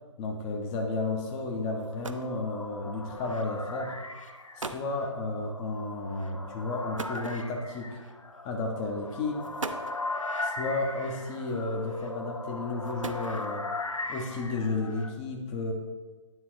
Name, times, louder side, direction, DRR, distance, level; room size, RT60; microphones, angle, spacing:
voice 1, 0.2-3.9 4.6-8.0 8.4-9.5 10.4-13.7 14.1-15.7, left 3 dB, 10° left, 1 dB, 0.4 m, -32 dB
sound 1, 1.5-1.6 1.8-2.4 3.4-3.6 4.3-4.4 4.6-5.0 7.0-7.8 8.8-8.9 9.4-10.1 11.3-11.8 12.7-13.7, right 3 dB, 80° right, 0.5 m, -39 dB
sound 2, 1.7-15.1, left 2 dB, 85° left, 0.7 m, -39 dB
9.4 x 3.7 x 4.3 m, 1.3 s
figure-of-eight pair, 135°, 16 cm